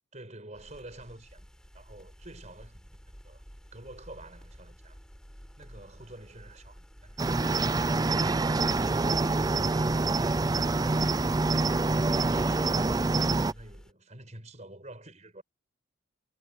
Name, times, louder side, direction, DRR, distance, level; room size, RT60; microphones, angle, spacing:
voice 1, 0.1-1.5 1.7-3.4 3.7-5.0 5.6-10.4 13.5-15.4, right 1 dB, 35° right, 5.1 m, -49 dB
sound 1, 0.5-13.9, equal, 5° left, 3.8 m, -51 dB
Cricket, 7.2-13.5, right 3 dB, 20° right, 0.4 m, -26 dB
head